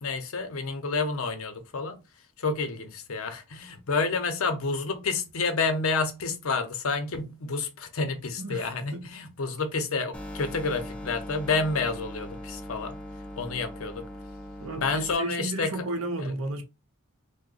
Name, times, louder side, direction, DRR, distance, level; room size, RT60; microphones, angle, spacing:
voice 1, 0.0-2.0 2.4-13.0 13.4-14.0 14.8-15.9 16.2-16.3, left 4 dB, 70° left, 0.6 m, -29 dB
voice 2, 8.4-9.0 14.6-16.6, right 2 dB, 65° right, 0.7 m, -33 dB
sound 1, 10.1-15.1, equal, 5° left, 0.4 m, -40 dB
2.8 x 2.1 x 3.8 m
head